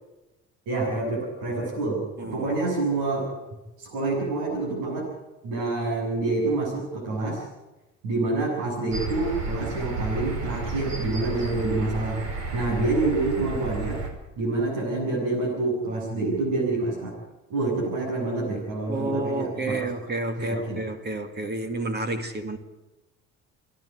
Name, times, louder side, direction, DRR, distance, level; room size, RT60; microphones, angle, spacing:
voice 1, 0.7-3.3 3.8-5.1 5.4-7.4 8.0-12.2 12.5-14.0 14.4-17.2 17.5-19.9 20.4-20.8, right 2 dB, 85° right, 7.6 m, -27 dB
sound 1, 8.9-14.1, right 4 dB, 60° right, 4.8 m, -32 dB
voice 2, 18.9-22.6, right 2 dB, 35° right, 2.4 m, -30 dB
28.5 x 11.0 x 9.5 m
cardioid pair, 95°, 29 cm